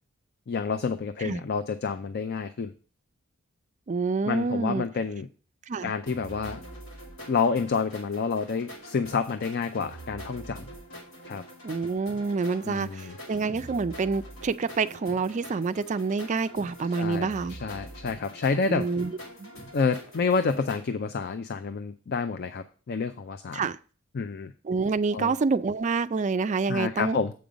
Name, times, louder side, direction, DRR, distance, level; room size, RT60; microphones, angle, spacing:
voice 1, 0.5-2.7 4.2-5.3 5.8-6.6 7.3-10.6 11.3-11.4 12.6-13.1 17.0-18.9 19.7-23.6 24.1-24.5 25.1-25.4 26.7-27.3, left 5 dB, 50° left, 0.4 m, -29 dB
voice 2, 3.9-4.9 5.7-5.9 11.6-17.6 18.7-19.1 19.4-19.5 23.5-23.8 24.6-27.2, right 4 dB, 35° right, 0.3 m, -27 dB
sound 1, 6.1-20.8, right 1 dB, 70° left, 2.5 m, -44 dB
7.8 x 5.3 x 5.0 m
head